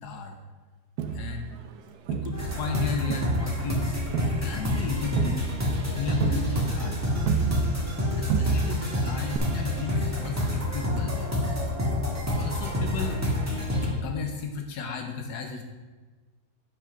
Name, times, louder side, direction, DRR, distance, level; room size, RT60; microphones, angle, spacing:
voice 1, 0.0-0.4 1.1-1.5 2.1-4.0 4.4-5.5 5.9-7.0 8.1-11.5 12.2-13.2 13.8-15.6, left 4 dB, 75° left, 4 dB, 1.3 m, -34 dB
Crowd, 1.0-2.8 3.1-8.0 8.3-9.0 9.3-9.4, right 7 dB, 80° right, 1.2 m, -30 dB
sound 1, 2.3-13.9, left 1 dB, 10° right, 1.4 m, -28 dB
8.5 x 5.5 x 5.1 m, 1.3 s
omnidirectional pair, 1.8 m